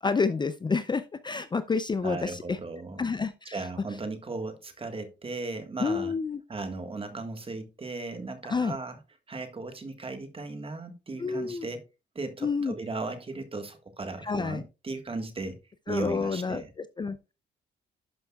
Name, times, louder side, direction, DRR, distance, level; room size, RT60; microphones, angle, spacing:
voice 1, 0.0-2.6 3.0-3.7 5.8-6.4 8.5-8.8 11.2-11.7 12.4-12.7 14.2-14.6 15.9-16.6 17.0-17.3, left 4 dB, 25° left, 0.5 m, -29 dB
voice 2, 2.0-3.1 3.5-6.1 6.5-9.0 9.3-11.8 12.1-15.6 15.9-16.7, right 3 dB, 30° right, 1.5 m, -36 dB
11.5 x 5.5 x 2.3 m
cardioid pair, 90°, 20 cm